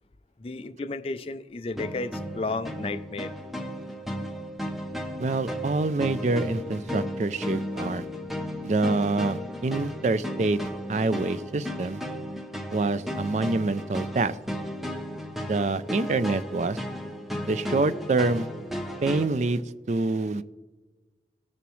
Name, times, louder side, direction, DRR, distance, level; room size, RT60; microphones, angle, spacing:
voice 1, 0.4-3.3, left 3 dB, 35° left, 10 dB, 0.4 m, -33 dB
sound 1, 1.7-19.3, equal, ahead, 0.8 m, -34 dB
voice 2, 5.2-8.1 8.6-10.6 10.9-12.0 12.7-14.4 15.5-16.8 17.4-18.5 19.0-19.6 19.9-20.4, right 3 dB, 40° right, 14 dB, 0.4 m, -26 dB
17.5 x 6.9 x 3.1 m, 1.3 s
head